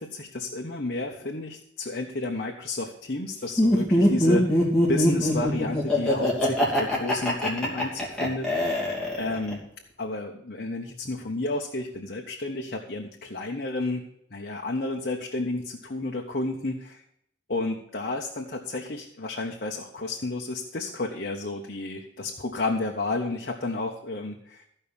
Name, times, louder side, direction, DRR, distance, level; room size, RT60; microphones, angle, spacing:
voice 1, 0.0-9.7 10.0-14.0 14.3-16.8 17.5-24.6, left 2 dB, 55° left, 0 dB, 1.2 m, -31 dB
Laughter, 3.6-9.5, left 1 dB, 5° left, 2.8 m, -22 dB
14.5 x 5.5 x 7.1 m, 0.74 s
head